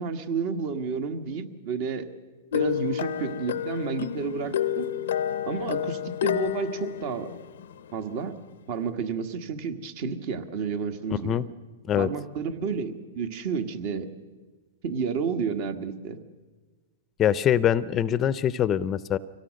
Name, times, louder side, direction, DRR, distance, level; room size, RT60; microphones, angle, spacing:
voice 1, 0.0-2.1 2.5-4.9 5.4-7.3 7.9-8.4 8.7-11.4 12.0-14.1 14.8-16.2, right 5 dB, 55° right, 8 dB, 1.7 m, -31 dB
sound 1, 2.5-8.0, left 10 dB, 75° left, 0.6 m, -30 dB
voice 2, 17.2-19.2, left 10 dB, 25° left, 17 dB, 0.5 m, -23 dB
24.0 x 17.5 x 6.5 m, 1.3 s
hypercardioid pair, 130°, 0 cm